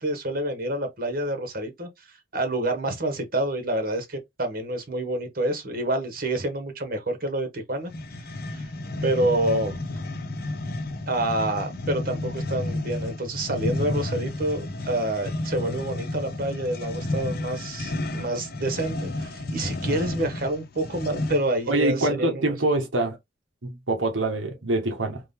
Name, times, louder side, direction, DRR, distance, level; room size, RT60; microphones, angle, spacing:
voice 1, 0.0-7.9 8.5-8.7 9.0-9.8 11.1-22.5, right 1 dB, 50° right, 1.1 m, -28 dB
sound 1, 7.9-21.6, left 2 dB, 50° left, 0.8 m, -32 dB
voice 2, 21.7-23.2 23.6-25.2, right 2 dB, 85° right, 1.4 m, -25 dB
3.8 x 3.2 x 3.6 m
head